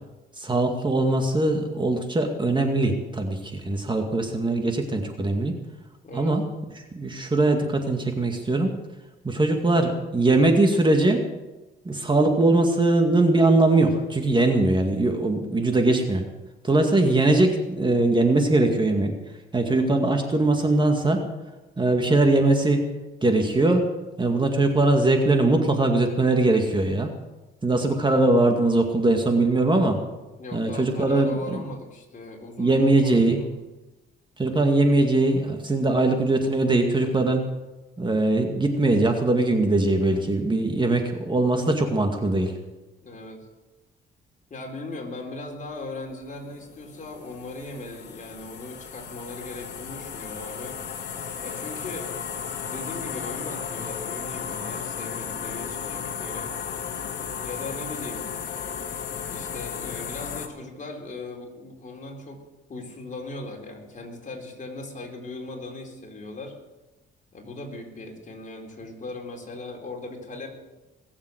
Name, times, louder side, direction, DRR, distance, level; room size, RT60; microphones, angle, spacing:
voice 1, 0.4-5.5 6.1-6.4 6.9-8.7 9.2-11.2 11.9-16.2 16.6-19.1 19.5-21.2 21.8-22.8 23.2-23.9 24.2-27.1 27.6-30.0 30.5-31.6 32.6-33.4 34.4-37.5 38.0-42.5, right 2 dB, 25° right, 4 dB, 2.2 m, -21 dB
voice 2, 6.0-6.4 30.4-33.5 43.0-43.5 44.5-51.1 51.4-52.1 52.6-56.5 57.4-58.3 59.3-62.4 62.7-66.5 67.3-70.5, left 2 dB, 40° left, 0 dB, 4.1 m, -38 dB
sound 1, 46.1-60.5, left 7 dB, 60° left, 1.9 m, -34 dB
21.5 x 7.5 x 7.9 m, 1.1 s
cardioid pair, 90°, 20 cm